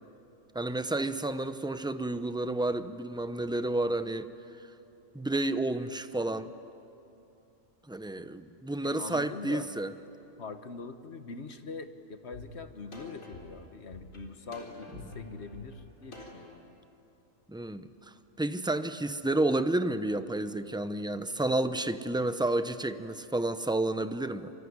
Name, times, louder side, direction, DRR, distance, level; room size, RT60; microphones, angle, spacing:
voice 1, 0.5-4.3 5.1-6.5 7.9-9.9 17.5-17.9 18.4-24.5, right 2 dB, 5° right, 11 dB, 0.5 m, -30 dB
voice 2, 8.8-9.7 10.4-16.8, left 4 dB, 55° left, 9 dB, 1.5 m, -43 dB
sound 1, 12.3-12.4 12.9-16.5, left 3 dB, 75° left, 4.5 m, -46 dB
26.0 x 24.0 x 9.6 m, 2.8 s
omnidirectional pair, 1.4 m